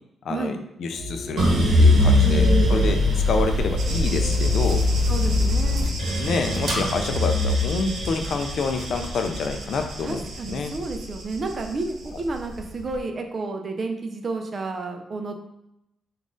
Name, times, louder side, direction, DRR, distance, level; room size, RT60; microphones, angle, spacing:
voice 1, 0.2-1.5 1.8-4.8 6.2-10.7, left 4 dB, 55° left, 6 dB, 0.4 m, -28 dB
sound 1, 0.9-9.5, right 1 dB, 70° left, 1.1 m, -38 dB
sound 2, 1.4-11.6 12.0-12.8, left 1 dB, 65° right, 1.0 m, -21 dB
voice 2, 2.2-2.8 5.1-5.9 10.0-15.4, right 3 dB, 35° right, 4 dB, 0.4 m, -30 dB
sound 3, 3.8-12.7, right 3 dB, 90° right, 0.8 m, -38 dB
3.9 x 2.4 x 3.7 m, 0.83 s
wide cardioid pair, 175°, 0 cm